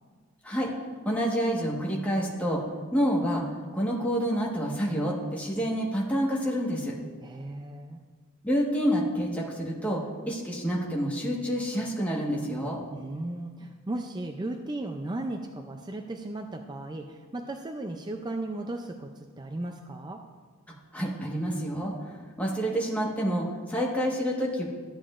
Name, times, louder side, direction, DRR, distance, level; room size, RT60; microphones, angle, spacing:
voice 1, 1.0-2.6 2.9-3.4 3.7-6.9 8.4-12.8 20.9-21.9 22.4-24.6, equal, 5° left, -3 dB, 1.3 m, -28 dB
voice 2, 7.2-8.0 12.9-20.2, right 2 dB, 20° right, 4 dB, 0.4 m, -36 dB
13.5 x 8.8 x 2.5 m, 1.5 s
head